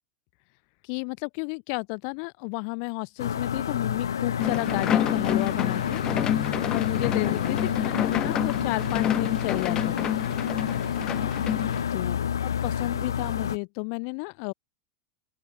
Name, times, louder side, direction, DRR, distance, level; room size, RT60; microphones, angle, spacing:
voice 1, 0.8-6.0 6.7-10.1 11.9-12.2 12.4-14.5, left 40 dB or more, 55° left, 5.6 m, -32 dB
sound 1, 3.2-13.6, left 8 dB, 85° left, 7.9 m, -29 dB
sound 2, 4.4-11.8, left 10 dB, 35° left, 2.4 m, -28 dB
open air
hypercardioid pair, 95°, 2 cm